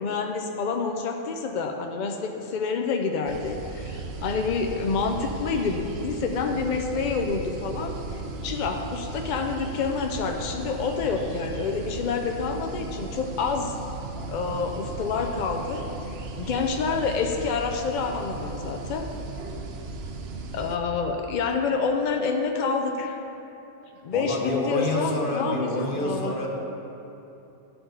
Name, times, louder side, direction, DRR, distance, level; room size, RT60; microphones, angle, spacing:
voice 1, 0.0-13.7 14.3-15.8 16.4-19.1 20.5-23.2 24.0-26.3, left 5 dB, 65° left, 3 dB, 0.4 m, -28 dB
sound 1, 3.3-20.8, right 3 dB, 60° right, 0.8 m, -36 dB
voice 2, 24.1-26.5, left 1 dB, 45° left, 0 dB, 1.1 m, -28 dB
11.5 x 4.7 x 3.8 m, 2.9 s
omnidirectional pair, 1.3 m